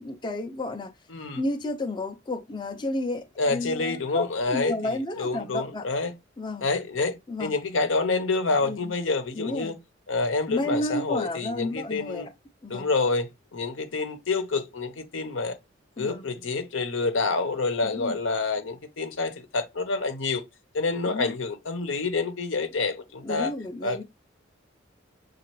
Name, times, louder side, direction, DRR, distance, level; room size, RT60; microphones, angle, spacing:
voice 1, 0.0-0.9 1.3-5.8 6.4-6.7 7.3-7.5 8.6-8.9 9.3-9.7 10.5-12.3 12.6-12.9 16.0-16.2 17.8-18.1 21.1-21.3 23.2-24.0, left 2 dB, 25° left, 0.5 m, -31 dB
voice 2, 1.1-1.4 3.4-4.7 5.2-6.1 6.6-9.8 10.1-12.3 12.7-15.6 16.0-20.4 20.7-23.5 23.8-24.0, left 3 dB, 85° left, 0.8 m, -28 dB
6.5 x 2.4 x 3.0 m
head